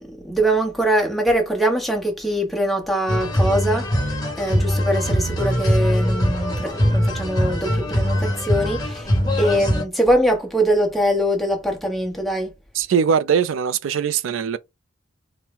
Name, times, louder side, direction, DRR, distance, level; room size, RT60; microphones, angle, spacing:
voice 1, 0.0-3.9 4.4-12.5, right 1 dB, ahead, 1.0 m, -22 dB
sound 1, 3.1-9.8, equal, 20° left, 1.2 m, -21 dB
voice 2, 12.7-14.6, right 7 dB, 85° right, 0.4 m, -21 dB
4.3 x 2.1 x 3.5 m
head